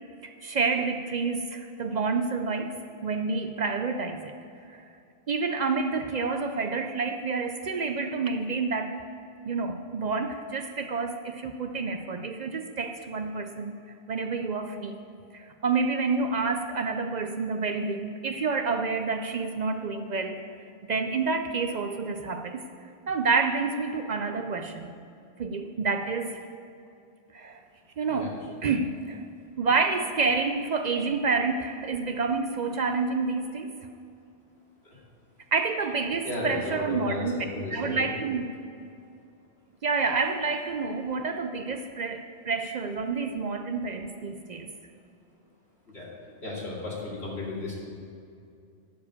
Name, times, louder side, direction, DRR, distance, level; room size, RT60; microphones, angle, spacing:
voice 1, 0.2-2.8 3.0-4.3 4.7-4.9 5.3-9.0 9.5-13.8 14.1-15.0 15.3-24.9 25.4-26.4 27.3-27.6 28.0-29.2 29.6-33.7 35.5-38.5 39.8-44.7, right 4 dB, 55° right, 6 dB, 0.5 m, -29 dB
voice 2, 36.2-38.0 45.9-46.1 46.4-47.8, left 2 dB, 90° left, -6 dB, 2.9 m, -34 dB
12.0 x 5.0 x 8.3 m, 2.5 s
omnidirectional pair, 1.1 m